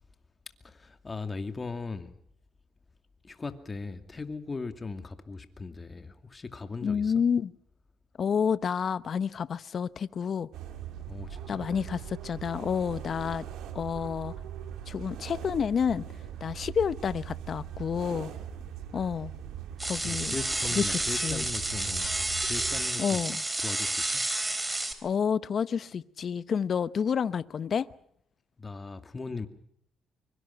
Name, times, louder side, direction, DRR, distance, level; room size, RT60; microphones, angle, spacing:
voice 1, 0.6-2.1 3.2-7.1 11.1-11.6 20.0-22.1 22.4-23.2 23.6-24.1 28.6-29.5, left 4 dB, 30° left, 2.5 m, -38 dB
voice 2, 6.8-7.5 8.2-10.5 11.5-13.4 13.7-14.3 14.9-16.0 16.4-18.3 18.9-19.3 19.8-20.3 20.8-21.4 23.0-23.4 25.0-27.9, left 7 dB, 50° left, 0.8 m, -29 dB
sound 1, 10.5-22.9, right 9 dB, 85° right, 3.0 m, -41 dB
sound 2, 19.8-24.9, right 1 dB, 15° right, 3.7 m, -30 dB
24.5 x 23.5 x 5.9 m
cardioid pair, 90°, 0 cm